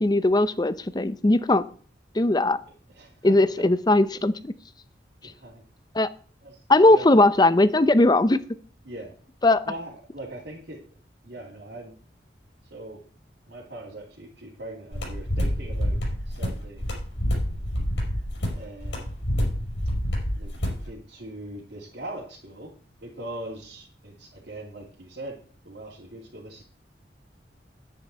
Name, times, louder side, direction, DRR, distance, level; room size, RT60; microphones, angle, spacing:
voice 1, 0.0-1.6 2.2-2.6 3.2-4.5 6.0-6.1 6.7-8.4 9.4-9.6, left 2 dB, 25° left, 14 dB, 0.6 m, -19 dB
voice 2, 2.9-3.7 5.2-5.6 6.4-6.6 6.9-7.2 8.8-9.1 9.6-10.8 11.2-11.9 12.6-13.0 13.5-16.0 16.3-16.9 18.5-19.1 20.3-22.7 23.0-25.4 25.6-26.6, right 1 dB, 70° right, -4 dB, 2.8 m, -41 dB
sound 1, 14.9-20.8, equal, 85° left, 5.1 m, -27 dB
9.8 x 9.6 x 4.3 m, 0.43 s
head